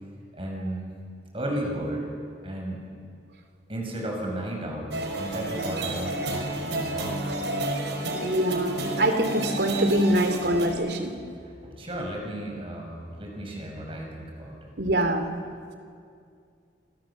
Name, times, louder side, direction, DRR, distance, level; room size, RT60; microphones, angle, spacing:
voice 1, 0.3-0.9 1.3-2.1 2.4-2.8 3.7-7.5 11.2-14.5, right 1 dB, 30° right, 0 dB, 6.7 m, -34 dB
sound 1, 4.9-10.7, right 1 dB, 85° right, 4.7 m, -30 dB
voice 2, 8.2-11.1 14.8-15.3, right 1 dB, 70° right, 7 dB, 2.8 m, -24 dB
28.5 x 27.0 x 7.4 m, 2.3 s
head